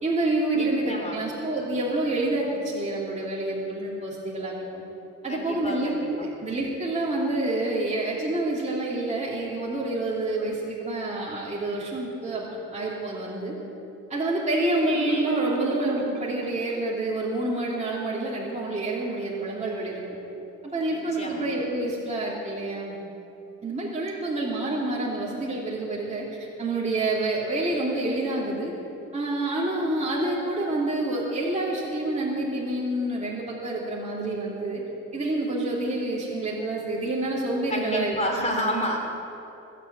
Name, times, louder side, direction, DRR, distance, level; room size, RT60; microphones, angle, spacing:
voice 1, 0.0-4.8 5.2-5.9 6.2-12.4 12.7-13.5 14.1-20.0 20.6-22.9 23.6-28.7 29.1-34.8 35.1-38.1, right 2 dB, 20° right, -5 dB, 2.8 m, -28 dB
voice 2, 0.5-1.2 5.3-6.3 20.9-21.4 37.7-39.0, equal, 20° left, 1 dB, 3.7 m, -30 dB
Marimba xylophone, 14.6-17.3, right 11 dB, 75° right, 0.6 m, -36 dB
20.0 x 7.0 x 8.9 m, 2.9 s
cardioid pair, 90°, 30 cm